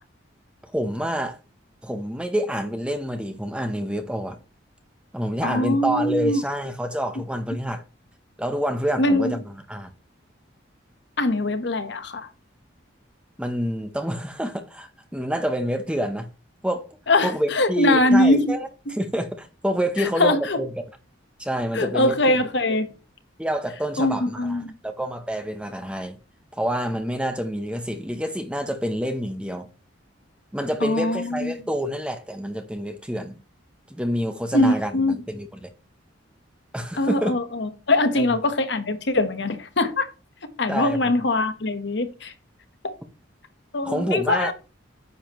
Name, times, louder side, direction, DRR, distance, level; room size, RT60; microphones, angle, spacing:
voice 1, 0.7-1.4 1.8-4.4 5.1-7.8 8.4-9.4 9.7-9.9 13.4-16.3 16.6-16.9 17.2-20.7 21.4-22.1 23.4-26.2 26.5-29.7 30.5-33.4 33.9-35.7 36.7-37.3 38.2-38.3 40.7-41.1 43.8-44.5, equal, 5° right, 0.8 m, -27 dB
voice 2, 5.4-6.4 9.0-9.4 11.2-12.3 17.1-18.5 20.0-20.6 21.7-22.9 24.0-24.7 30.8-31.5 34.5-35.1 37.0-40.1 40.6-42.3 42.8-42.9 43.7-44.5, left 2 dB, 60° left, 1.1 m, -22 dB
9.5 x 7.2 x 3.0 m
head